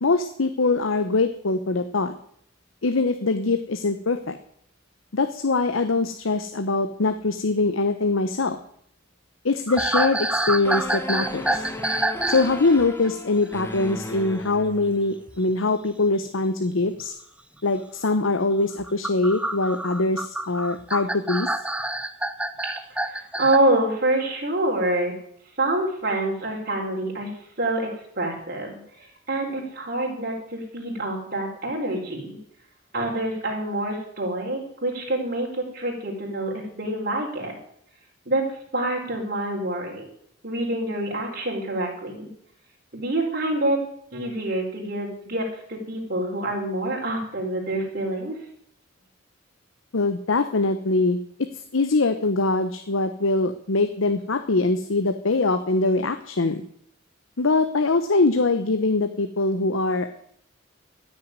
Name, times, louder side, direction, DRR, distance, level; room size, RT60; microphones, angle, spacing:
voice 1, 0.0-2.2 2.8-4.4 5.1-8.6 9.4-11.6 12.3-17.1 17.6-21.5 49.9-56.6 57.4-60.1, left 3 dB, 90° left, 8 dB, 0.9 m, -23 dB
sound 1, 9.7-12.5 12.8-13.1 15.3-15.5 16.8-16.9 18.8-23.6, right 1 dB, 5° right, 0.7 m, -27 dB
sound 2, 10.6-15.3, left 1 dB, 15° left, 1.2 m, -36 dB
voice 2, 23.0-25.1 25.6-27.3 27.6-27.9 28.2-28.8 29.3-32.4 32.9-37.5 38.3-40.1 40.4-42.3 42.9-43.8 44.1-48.4, right 1 dB, 50° right, -1 dB, 4.2 m, -26 dB
14.0 x 6.7 x 9.6 m, 0.68 s
head